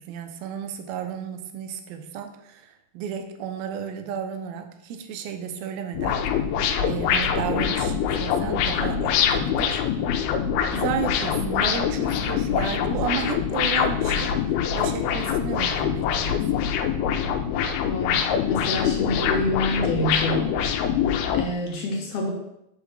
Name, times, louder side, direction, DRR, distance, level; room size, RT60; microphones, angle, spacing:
voice 1, 0.0-6.2 6.8-9.8 10.7-16.7, right 7 dB, 85° right, 6 dB, 2.6 m, -33 dB
sound 1, 5.9-21.5, left 8 dB, 90° left, 2.6 m, -24 dB
voice 2, 17.8-20.5 21.3-22.3, left 1 dB, 65° left, 0 dB, 2.4 m, -27 dB
5.7 x 5.0 x 6.4 m, 0.81 s
omnidirectional pair, 4.3 m